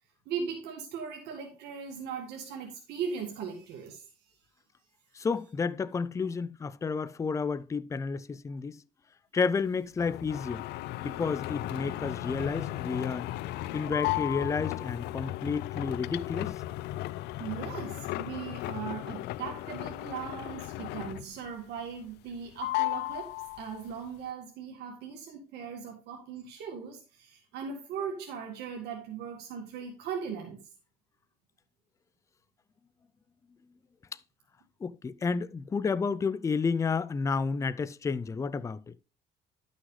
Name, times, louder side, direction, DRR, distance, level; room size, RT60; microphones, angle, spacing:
voice 1, 0.3-4.0 17.4-30.6, right 6 dB, 80° right, 1.9 m, -39 dB
voice 2, 5.2-8.8 9.3-10.6 11.0-13.3 13.7-16.5 34.8-38.9, left 5 dB, 20° left, 0.4 m, -31 dB
sound 1, 10.0-21.5 21.8-22.4 22.6-23.9, left 17 dB, 80° left, 0.4 m, -35 dB
11.0 x 6.3 x 3.2 m
cardioid pair, 110°, 17 cm